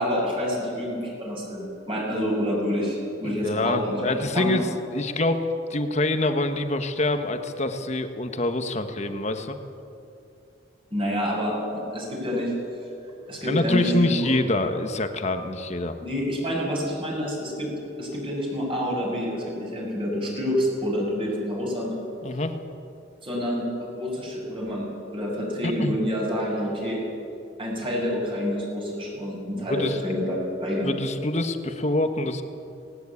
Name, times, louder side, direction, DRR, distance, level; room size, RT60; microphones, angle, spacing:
voice 1, 0.0-4.0 4.3-4.5 10.9-12.5 13.3-14.4 16.0-17.7 18.0-22.0 23.2-27.0 27.6-30.9, equal, 30° right, -2 dB, 6.5 m, -28 dB
voice 2, 3.2-4.7 4.9-9.6 13.4-16.0 22.2-22.5 25.6-26.0 29.5-30.3 30.8-32.4, left 2 dB, 40° left, 7 dB, 1.4 m, -26 dB
19.5 x 18.0 x 8.5 m, 2.7 s
head